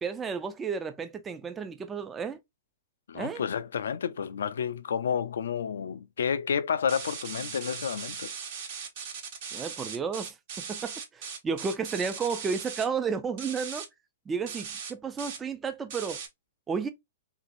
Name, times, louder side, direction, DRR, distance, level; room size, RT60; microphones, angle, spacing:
voice 1, 0.0-2.4 3.1-3.4 9.5-13.9 14.3-16.2 16.7-16.9, right 5 dB, 15° right, 0.3 m, -32 dB
voice 2, 3.1-8.3, left 7 dB, 75° left, 0.3 m, -30 dB
sound 1, 6.9-12.8 13.4-13.8 14.5-14.9 15.2-15.4 15.9-16.3, right 7 dB, 55° right, 0.9 m, -39 dB
2.8 x 2.5 x 2.5 m
hypercardioid pair, 120°, 0 cm